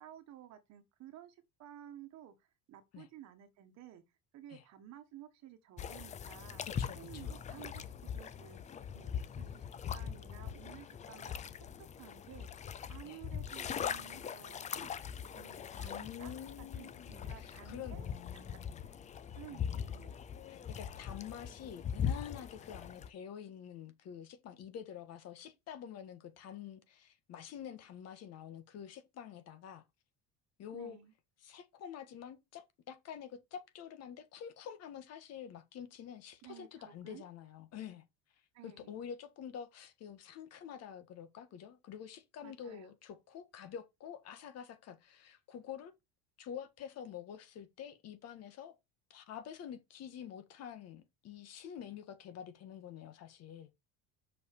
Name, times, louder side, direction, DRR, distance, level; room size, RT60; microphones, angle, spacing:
voice 1, 0.0-2.4 2.7-4.0 4.3-6.6 7.0-7.8 8.1-9.7 9.9-11.3 12.0-12.6 12.9-14.9 15.3-18.1 18.3-18.6 19.4-20.2 30.7-31.1 36.4-37.2 38.5-39.0 42.4-42.9, right 11 dB, 45° right, 1.7 m, -54 dB
sound 1, 5.8-23.1, left 8 dB, 20° left, 0.4 m, -41 dB
voice 2, 6.6-7.3 13.0-13.2 15.7-18.8 19.5-19.8 20.5-29.8 30.6-31.0 31.4-38.0 38.6-45.9 46.4-48.8 49.1-53.7, left 8 dB, 45° left, 1.6 m, -48 dB
6.4 x 5.4 x 7.0 m
cardioid pair, 175°, 36 cm